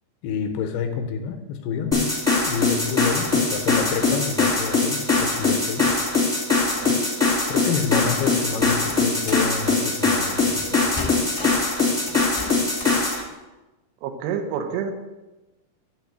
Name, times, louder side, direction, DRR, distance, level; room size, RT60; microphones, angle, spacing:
voice 1, 0.2-2.2 2.5-6.0 6.9-7.1 7.5-10.8, left 7 dB, 80° left, 5 dB, 2.5 m, -29 dB
sound 1, 1.9-13.2, left 3 dB, 5° left, 0.7 m, -22 dB
sound 2, 8.4-9.5 10.4-10.7 10.9-11.7 12.1-13.0, left 4 dB, 55° left, 0.7 m, -34 dB
voice 2, 14.0-14.9, right 7 dB, 80° right, 6 dB, 2.9 m, -28 dB
11.0 x 3.8 x 7.5 m, 1.1 s
omnidirectional pair, 4.8 m